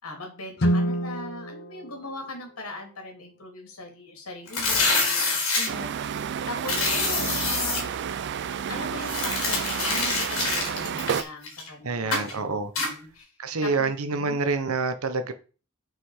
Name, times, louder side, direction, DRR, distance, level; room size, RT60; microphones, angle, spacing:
voice 1, 0.0-6.2 6.5-8.1 8.7-13.3 13.6-14.4, left 2 dB, 85° left, 2.7 m, -40 dB
Guitar, 0.6-3.2, equal, 50° left, 0.8 m, -29 dB
sound 1, 4.5-5.7 6.6-7.8 9.0-11.7 12.1-12.3 12.8-12.9, left 3 dB, 70° left, 3.3 m, -26 dB
sound 2, 5.7-11.2, right 7 dB, 55° right, 0.4 m, -30 dB
voice 2, 11.8-12.7 13.4-15.3, right 4 dB, 80° right, 0.9 m, -27 dB
5.8 x 5.6 x 4.8 m
head